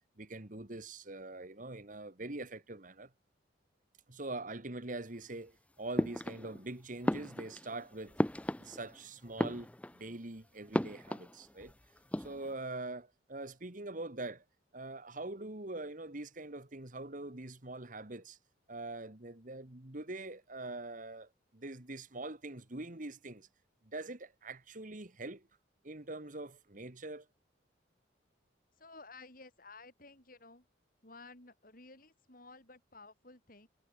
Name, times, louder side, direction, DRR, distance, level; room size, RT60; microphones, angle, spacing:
voice 1, 0.2-3.1 4.1-8.2 8.5-11.7 12.2-14.4 14.7-18.4 18.7-23.5 23.8-25.5 25.8-27.3, right 2 dB, 45° right, 2.0 m, -43 dB
sound 1, 6.0-6.7 7.0-9.0 9.3-10.1 10.7-11.7 12.0-12.5, left 1 dB, 5° left, 0.6 m, -35 dB
voice 2, 28.7-30.7 31.0-33.7, left 3 dB, 50° left, 7.7 m, -54 dB
head